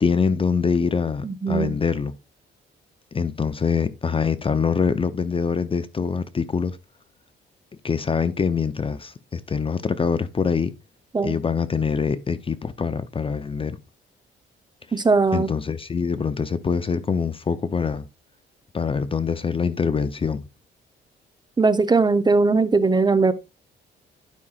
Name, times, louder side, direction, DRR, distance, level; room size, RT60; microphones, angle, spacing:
voice 1, 0.0-2.1 3.1-6.8 7.8-10.7 11.2-13.8 15.3-18.1 18.7-20.4, left 5 dB, 25° left, 0.6 m, -24 dB
voice 2, 1.2-1.8 11.1-11.4 14.9-15.5 21.6-23.3, right 4 dB, 20° right, 0.8 m, -19 dB
11.5 x 5.4 x 2.4 m
cardioid pair, 90°, 20 cm